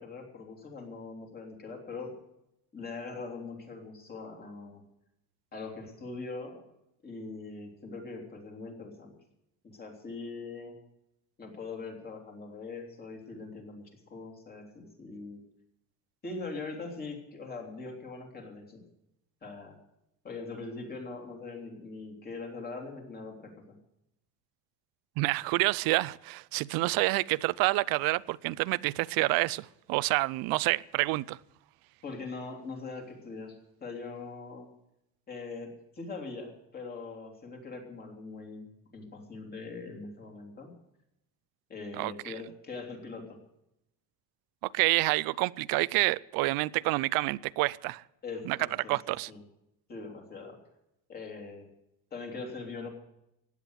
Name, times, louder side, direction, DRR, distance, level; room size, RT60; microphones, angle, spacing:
voice 1, 0.0-2.1 2.7-4.8 5.5-6.6 7.0-9.1 9.6-10.8 11.4-15.4 16.2-18.8 19.4-19.8 20.2-23.5 32.0-34.7 35.3-38.7 38.9-40.7 41.7-43.4 48.2-48.9 49.3-49.4 49.9-50.6 51.1-51.7 52.1-52.9, left 3 dB, 25° left, 3.1 m, -42 dB
voice 2, 25.2-31.4 42.0-42.3 44.6-48.0 48.5-48.6 48.9-49.3, right 21 dB, 75° right, 0.5 m, -28 dB
15.5 x 9.9 x 8.0 m
cardioid pair, 160°, 36 cm